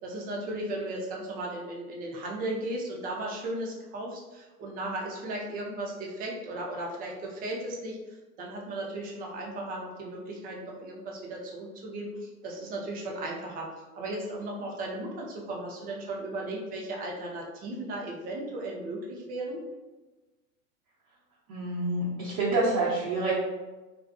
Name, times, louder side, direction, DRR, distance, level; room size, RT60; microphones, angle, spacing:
voice 1, 0.0-13.7 13.9-19.6, right 1 dB, 20° right, -1 dB, 0.4 m, -36 dB
voice 2, 21.5-23.3, right 2 dB, 50° right, -8 dB, 0.8 m, -27 dB
2.5 x 2.3 x 2.3 m, 1.2 s
hypercardioid pair, 95°, 44 cm